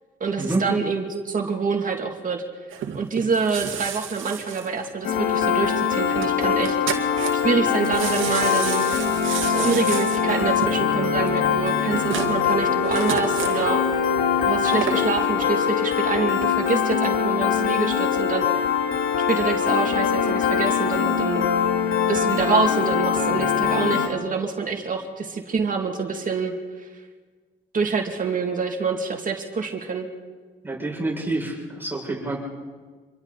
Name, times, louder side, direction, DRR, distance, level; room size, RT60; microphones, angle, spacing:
voice 1, 0.2-2.4 2.9-6.8 7.3-8.8 9.5-13.8 14.5-18.6 19.3-21.5 22.1-26.5 27.7-30.1, right 5 dB, 40° right, 2 dB, 2.7 m, -26 dB
sound 1, 2.7-5.5 5.8-5.9 6.2-6.3 6.5-7.6 7.8-13.7 14.4-15.1 15.6-15.7, right 9 dB, 80° right, 2.1 m, -31 dB
Piano, 5.0-24.1, left 7 dB, 85° left, 2.5 m, -22 dB
voice 2, 30.6-32.3, right 2 dB, 10° right, -3 dB, 6.8 m, -27 dB
27.0 x 23.5 x 4.2 m, 1.4 s
cardioid pair, 90°, 20 cm